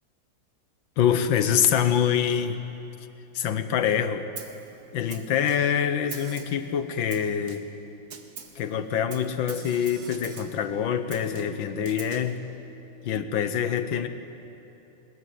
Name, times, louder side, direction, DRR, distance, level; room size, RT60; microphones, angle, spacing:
voice 1, 1.0-2.6 3.3-4.3 4.9-7.6 8.5-12.4 13.0-14.1, left 8 dB, 90° left, 10 dB, 1.8 m, -25 dB
Snare drum, 4.4-4.7 5.1-5.8 6.1-6.7 7.1-7.8 8.1-8.6 9.1-10.6 11.1-12.3, right 6 dB, 55° right, 1.9 m, -43 dB
22.5 x 20.0 x 9.4 m, 3.0 s
omnidirectional pair, 2.0 m